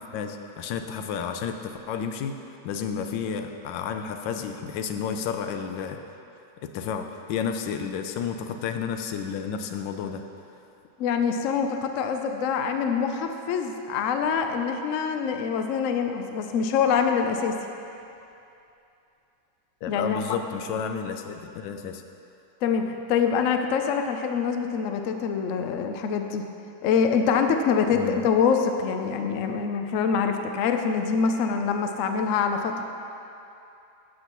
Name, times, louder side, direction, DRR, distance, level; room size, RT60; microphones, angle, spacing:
voice 1, 0.1-2.4 2.6-6.0 6.6-10.2 19.8-22.0 27.9-28.2, left 7 dB, 85° left, 6 dB, 1.3 m, -31 dB
voice 2, 11.0-17.6 19.9-20.2 22.6-26.5 26.8-32.8, left 6 dB, 70° left, 5 dB, 0.7 m, -25 dB
12.5 x 7.6 x 3.0 m, 2.7 s
omnidirectional pair, 2.0 m